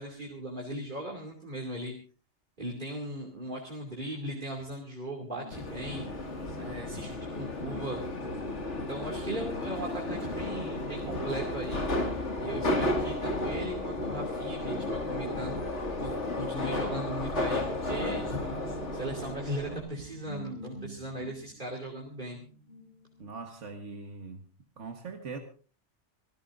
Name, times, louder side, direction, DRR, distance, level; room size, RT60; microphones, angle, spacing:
voice 1, 0.0-1.9 2.6-6.1 6.6-8.0 8.9-11.9 12.4-15.6 16.0-18.6 18.9-22.4, right 1 dB, 45° right, -2 dB, 2.8 m, -38 dB
Guitar, 5.3-13.0 13.3-23.8, right 2 dB, 60° left, 7.4 m, -48 dB
Subway metro underground, 5.5-19.8, left 2 dB, 80° left, 2.5 m, -33 dB
voice 2, 23.2-24.4 24.8-25.4, right 4 dB, 85° right, 4 dB, 1.8 m, -41 dB
26.5 x 15.5 x 2.6 m, 0.39 s
omnidirectional pair, 1.2 m